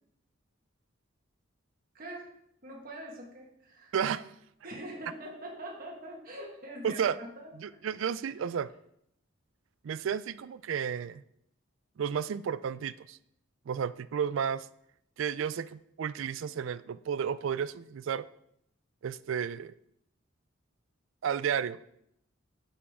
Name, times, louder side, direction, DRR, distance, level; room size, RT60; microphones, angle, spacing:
voice 1, 1.9-2.3 2.6-3.9 4.6-7.8, right 1 dB, 45° right, -2 dB, 1.5 m, -43 dB
voice 2, 3.9-4.3 6.8-7.2 7.6-8.7 9.8-11.2 12.0-13.2 13.7-14.7 15.2-18.3 19.0-19.7 21.2-21.9, right 7 dB, 70° right, 17 dB, 0.3 m, -32 dB
8.4 x 7.3 x 3.6 m, 0.75 s
head